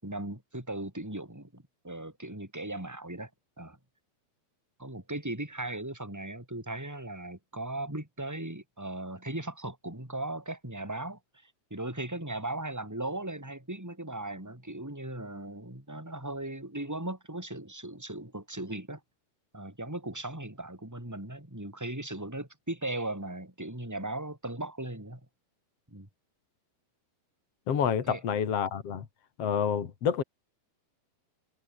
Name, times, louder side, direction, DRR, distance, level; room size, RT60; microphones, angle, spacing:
voice 1, 0.0-3.3 3.6-3.8 4.8-19.0 19.5-25.2 25.9-26.1 28.1-28.2, right 1 dB, 5° right, 6.6 m, -38 dB
voice 2, 27.7-29.1 29.4-30.2, left 7 dB, 45° left, 2.7 m, -28 dB
omnidirectional pair, 4.6 m